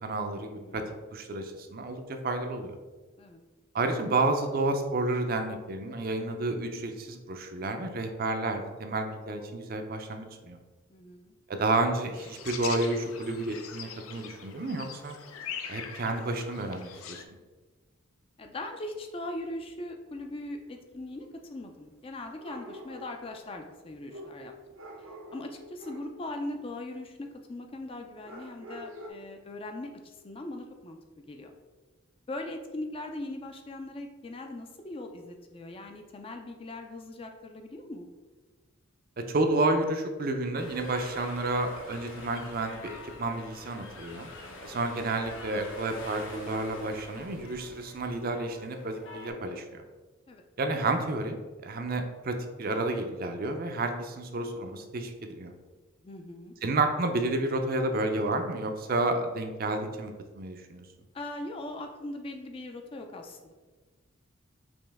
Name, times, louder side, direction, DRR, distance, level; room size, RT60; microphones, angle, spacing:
voice 1, 0.0-0.8 1.1-2.8 3.7-10.6 11.5-15.1 15.7-17.2 39.3-44.3 44.6-49.6 50.6-51.4 51.6-55.5 56.6-60.8, right 2 dB, 45° right, 6 dB, 0.4 m, -30 dB
voice 2, 10.9-11.4 18.4-24.5 25.3-31.5 32.3-38.1 44.4-44.7 50.3-50.4 56.0-56.5 61.1-63.5, left 1 dB, 25° left, 4 dB, 0.3 m, -40 dB
sound 1, 12.2-17.2, left 7 dB, 85° left, 0.5 m, -42 dB
sound 2, 20.2-20.3 22.4-23.3 24.1-26.2 28.2-29.1, equal, 80° right, 0.8 m, -45 dB
sound 3, 40.6-49.3, left 2 dB, 65° left, 0.8 m, -46 dB
5.2 x 2.9 x 3.4 m, 1.3 s
head